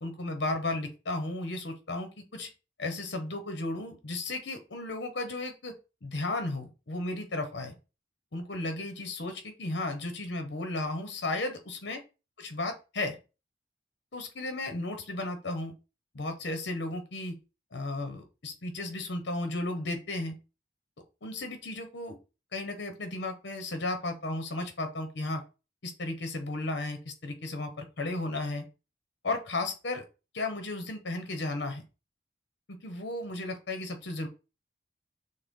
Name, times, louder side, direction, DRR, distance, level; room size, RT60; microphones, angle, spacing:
voice 1, 0.0-2.5 2.8-5.7 6.0-7.7 8.3-12.0 12.4-13.2 14.1-15.7 16.1-17.4 17.7-20.4 21.2-22.2 22.5-25.4 25.8-28.6 29.2-30.1 30.3-31.8 32.7-34.3, left 2 dB, 70° left, 6 dB, 0.8 m, -34 dB
6.4 x 2.2 x 3.6 m, 0.31 s
head